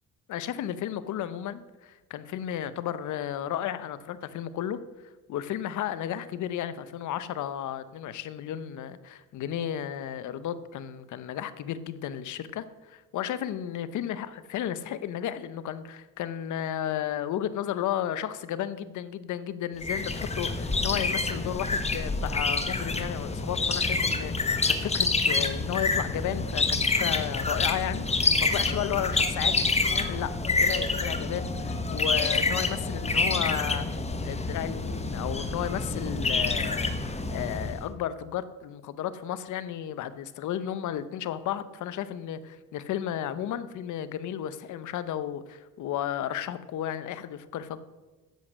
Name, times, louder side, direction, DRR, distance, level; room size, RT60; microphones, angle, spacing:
voice 1, 0.3-4.8 5.3-33.9 34.2-47.8, left 10 dB, 75° left, 14 dB, 0.8 m, -33 dB
sound 1, 19.8-37.8, left 3 dB, 20° left, 1.1 m, -27 dB
10.5 x 8.1 x 6.3 m, 1.2 s
cardioid pair, 90°, 30 cm